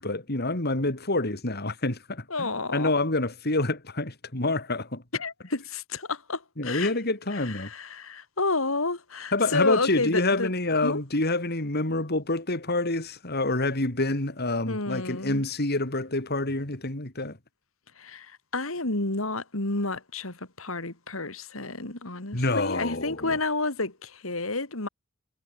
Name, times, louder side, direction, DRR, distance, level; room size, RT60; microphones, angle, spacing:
voice 1, 0.0-5.0 6.6-7.7 9.3-17.4 22.3-23.4, left 2 dB, 50° left, 3.8 m, -27 dB
voice 2, 2.3-2.9 5.2-6.9 7.3-10.5 10.8-11.0 14.7-15.4 18.0-24.9, left 3 dB, 80° left, 3.4 m, -30 dB
head